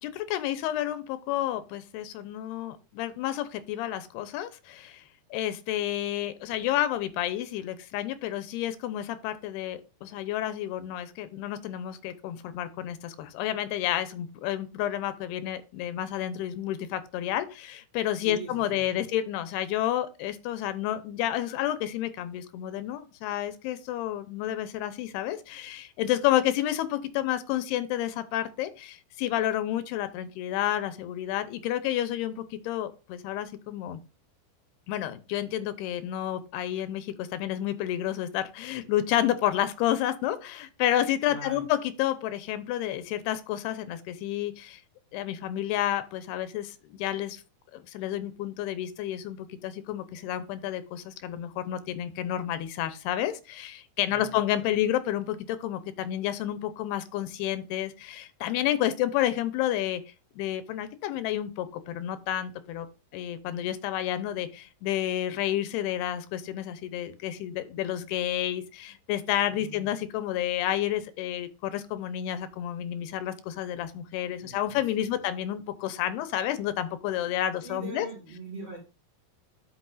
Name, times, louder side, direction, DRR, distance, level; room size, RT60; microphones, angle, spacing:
voice 1, 0.0-5.1 5.3-34.0 34.9-44.8 45.1-47.4 47.7-60.0 60.4-62.9 63.1-78.1, left 12 dB, 85° left, 11 dB, 2.8 m, -30 dB
voice 2, 18.2-19.0 41.3-41.6 54.1-54.9 69.5-69.9 74.4-75.2 77.6-78.8, right 3 dB, 45° right, -2 dB, 2.9 m, -43 dB
11.5 x 6.1 x 2.5 m, 0.31 s
omnidirectional pair, 4.6 m